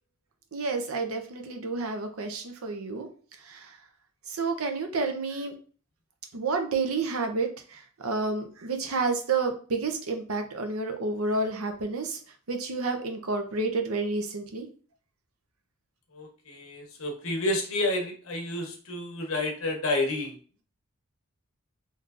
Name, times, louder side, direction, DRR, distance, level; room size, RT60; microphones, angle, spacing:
voice 1, 0.5-3.1 3.4-3.8 4.3-5.5 6.3-12.2 12.5-14.7, right 3 dB, 90° right, 5 dB, 0.6 m, -30 dB
voice 2, 16.1-20.4, left 2 dB, 70° left, 2 dB, 0.9 m, -30 dB
3.7 x 2.7 x 2.4 m, 0.40 s
head